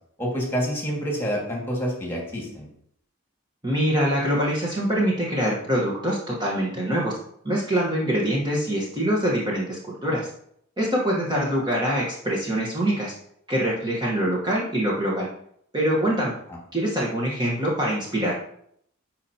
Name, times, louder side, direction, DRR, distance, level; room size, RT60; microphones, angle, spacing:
voice 1, 0.2-2.7, equal, 10° left, -1 dB, 1.9 m, -27 dB
voice 2, 3.6-7.1 7.4-10.3 10.8-13.1 13.5-15.3 15.7-16.3 16.7-18.3, equal, 20° right, -4 dB, 1.2 m, -24 dB
11.0 x 4.4 x 2.8 m, 0.68 s
head